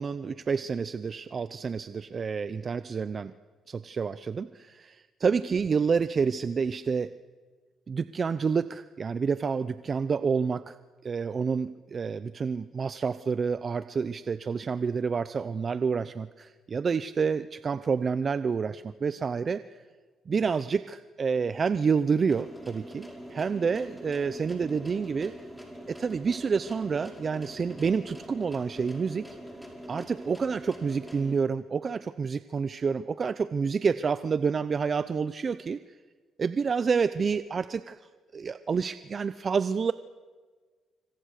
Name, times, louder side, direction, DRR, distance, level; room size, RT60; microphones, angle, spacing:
voice 1, 0.0-3.3 3.7-7.1 7.9-10.8 11.0-19.8 20.3-25.4 25.9-29.2 29.9-35.8 36.4-38.0 38.3-39.9, right 5 dB, 40° right, 13 dB, 0.7 m, -28 dB
sound 1, 22.3-31.4, equal, 5° left, 5.7 m, -44 dB
26.0 x 25.5 x 6.7 m, 1.4 s
cardioid pair, 90°, 0 cm